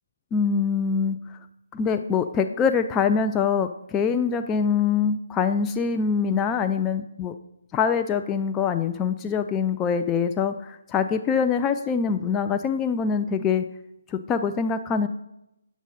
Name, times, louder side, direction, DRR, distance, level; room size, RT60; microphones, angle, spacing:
voice 1, 0.3-1.2 1.7-7.3 7.7-13.6 14.1-15.1, left 6 dB, 15° left, 8 dB, 0.3 m, -24 dB
8.6 x 7.1 x 4.1 m, 0.84 s
figure-of-eight pair, 150°, 0 cm